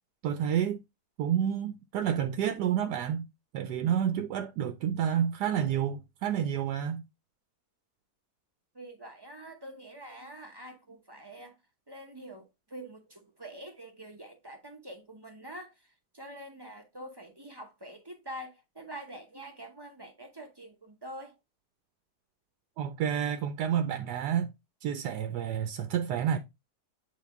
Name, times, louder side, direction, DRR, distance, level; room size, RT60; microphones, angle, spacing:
voice 1, 0.2-0.8 1.2-3.3 3.5-7.0 22.8-24.5 24.8-26.4, right 9 dB, 85° right, 1.2 m, -29 dB
voice 2, 8.7-11.6 11.9-15.7 16.1-21.4, right 1 dB, 25° right, 0.6 m, -45 dB
8.3 x 3.5 x 3.4 m
omnidirectional pair, 1.8 m